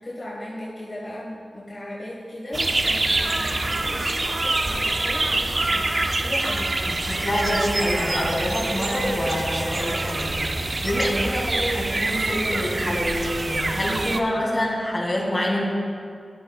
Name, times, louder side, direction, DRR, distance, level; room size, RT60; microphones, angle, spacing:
voice 1, 0.0-6.7 10.9-11.3, left 1 dB, 40° left, -7 dB, 1.6 m, -36 dB
sound 1, 2.5-14.2, right 2 dB, 45° right, 0.5 m, -25 dB
voice 2, 6.8-15.6, equal, 25° left, -3 dB, 2.1 m, -26 dB
12.0 x 8.0 x 2.4 m, 2.3 s
cardioid pair, 55°, 0 cm